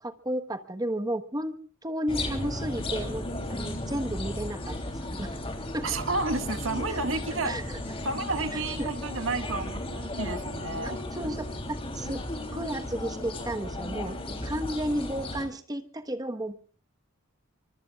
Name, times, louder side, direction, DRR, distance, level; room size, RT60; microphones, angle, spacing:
voice 1, 0.0-1.6 1.8-5.3 5.7-5.9 6.9-7.1 7.4-7.8 8.5-8.9 10.8-12.2 12.5-16.7, right 1 dB, 20° right, 7 dB, 1.2 m, -33 dB
sound 1, 2.1-15.5, left 1 dB, 25° left, 3.2 m, -35 dB
voice 2, 5.8-7.6 8.0-11.0, right 3 dB, 65° right, 7 dB, 1.8 m, -31 dB
25.0 x 24.5 x 2.4 m, 0.44 s
head